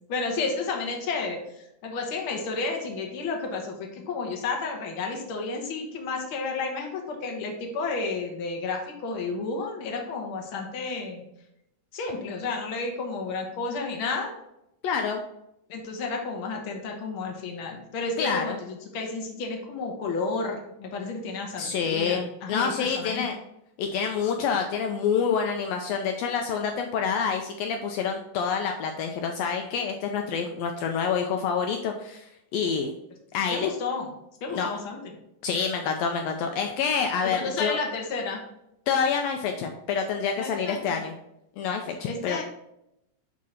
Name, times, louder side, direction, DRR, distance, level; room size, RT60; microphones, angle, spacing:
voice 1, 0.1-1.4 1.8-11.2 11.9-14.3 15.7-23.2 33.5-34.1 34.4-35.0 37.3-38.4 40.4-41.0 42.0-42.4, left 4 dB, 60° left, 2 dB, 1.5 m, -31 dB
voice 2, 14.8-15.2 18.2-18.6 21.6-23.4 23.8-32.9 33.3-33.7 34.5-34.7 35.4-37.8 38.9-41.1 41.6-42.4, left 6 dB, 85° left, 3 dB, 1.4 m, -27 dB
8.2 x 2.8 x 4.9 m, 0.83 s
omnidirectional pair, 3.5 m